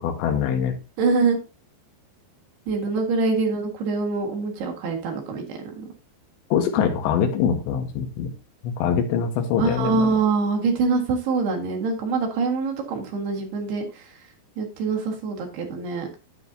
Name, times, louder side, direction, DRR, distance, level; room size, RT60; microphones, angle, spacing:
voice 1, 0.0-0.7 6.5-8.3 8.6-10.1, left 7 dB, 80° left, 3 dB, 3.6 m, -23 dB
voice 2, 1.0-1.4 2.7-5.9 9.6-14.1 14.6-16.1, right 4 dB, 65° right, 1 dB, 3.6 m, -24 dB
9.4 x 9.1 x 2.8 m, 0.28 s
omnidirectional pair, 5.1 m